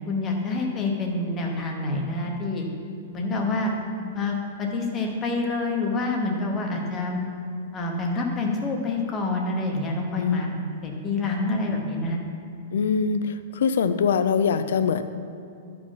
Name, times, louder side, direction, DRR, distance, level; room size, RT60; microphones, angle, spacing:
voice 1, 0.1-2.6 3.1-3.7 4.1-7.3 7.7-10.5 10.8-12.2, left 2 dB, 15° left, 1 dB, 0.9 m, -27 dB
voice 2, 12.7-15.0, left 6 dB, 65° left, 11 dB, 0.5 m, -23 dB
11.0 x 5.1 x 5.7 m, 2.6 s
supercardioid pair, 180°, 0 cm